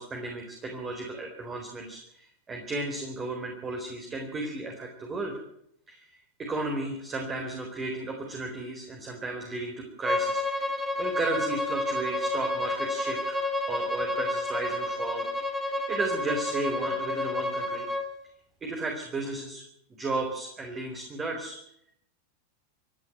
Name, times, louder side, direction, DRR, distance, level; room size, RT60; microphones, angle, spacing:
voice 1, 0.0-5.3 5.9-13.4 13.7-15.3 15.6-17.9 18.6-19.6 19.9-21.6, right 2 dB, 20° right, 2 dB, 4.1 m, -34 dB
Bowed string instrument, 10.0-18.1, left 2 dB, 5° right, 3.3 m, -30 dB
28.0 x 10.5 x 9.2 m, 0.73 s
figure-of-eight pair, 90°, 0 cm